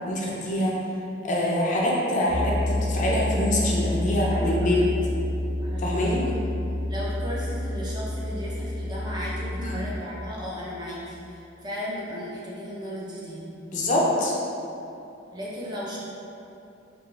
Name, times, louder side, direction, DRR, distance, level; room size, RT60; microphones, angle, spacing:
voice 1, 0.1-0.8 1.2-4.8 5.8-6.2 9.6-9.7 13.7-14.3, left 1 dB, 40° left, -4 dB, 0.4 m, -25 dB
sound 1, 2.3-10.0, left 1 dB, 85° right, 0.7 m, -29 dB
voice 2, 4.3-5.3 5.6-6.6 6.9-13.4 15.3-16.0, equal, 25° right, -7 dB, 0.5 m, -36 dB
3.7 x 2.4 x 2.3 m, 2.8 s
head